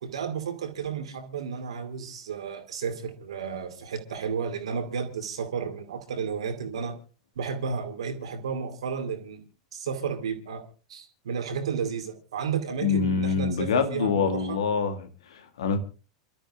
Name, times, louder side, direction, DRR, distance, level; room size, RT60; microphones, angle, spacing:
voice 1, 0.0-6.9 7.4-9.4 9.7-10.6 10.9-14.6, right 6 dB, 65° right, 2.3 m, -32 dB
voice 2, 12.8-15.8, left 5 dB, 65° left, 1.9 m, -26 dB
29.0 x 12.5 x 2.5 m
figure-of-eight pair, 90°, 3 cm